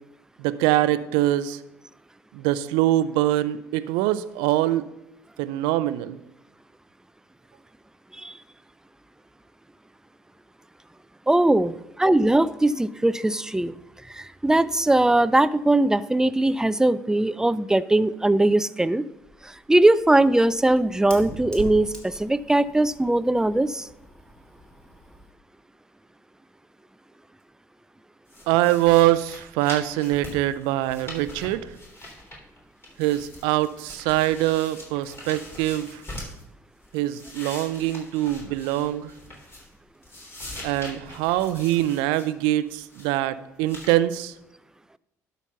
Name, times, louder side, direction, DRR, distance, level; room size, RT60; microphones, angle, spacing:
voice 1, 0.4-1.6 2.3-4.8 5.4-6.2 28.5-31.6 33.0-36.0 36.9-39.1 40.6-44.3, right 15 dB, 75° right, 14 dB, 0.4 m, -23 dB
voice 2, 11.3-13.7 14.1-19.0 19.7-23.8, right 1 dB, 5° right, 16 dB, 0.4 m, -20 dB
Fire, 19.1-25.3, equal, 10° left, 2.4 m, -42 dB
sound 1, 28.3-32.6 32.8-36.4 36.8-39.8 40.0-42.3 42.7-43.2 43.6-43.9, left 1 dB, 30° left, 3.6 m, -42 dB
11.5 x 4.1 x 5.7 m, 0.88 s
hypercardioid pair, 55°, 8 cm